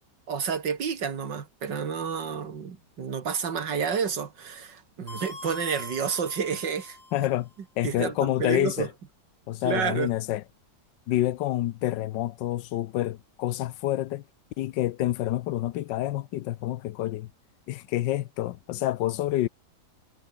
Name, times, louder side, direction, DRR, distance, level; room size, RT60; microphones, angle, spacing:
voice 1, 0.3-7.0 7.8-8.9 9.6-10.1, right 6 dB, 80° right, 2.7 m, -30 dB
sound 1, 5.1-7.4, left 2 dB, 65° left, 7.1 m, -43 dB
voice 2, 7.1-7.5 7.8-8.9 9.5-10.4 11.1-14.2 14.6-17.3 17.7-19.5, left 14 dB, 85° left, 1.4 m, -28 dB
omnidirectional pair, 1.9 m